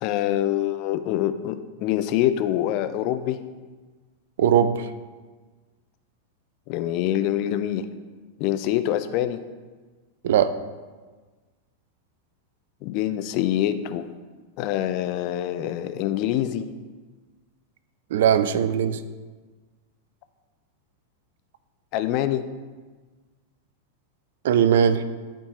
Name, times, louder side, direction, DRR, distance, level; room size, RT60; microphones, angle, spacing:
voice 1, 0.0-3.4 6.7-7.9 8.4-9.4 12.8-14.0 14.6-16.7 21.9-22.4, left 12 dB, 45° left, 11 dB, 0.4 m, -25 dB
voice 2, 4.4-4.9 10.2-10.5 18.1-19.0 24.4-25.0, right 8 dB, 55° right, 12 dB, 0.4 m, -19 dB
11.5 x 4.4 x 3.0 m, 1.4 s
figure-of-eight pair, 90°, 0 cm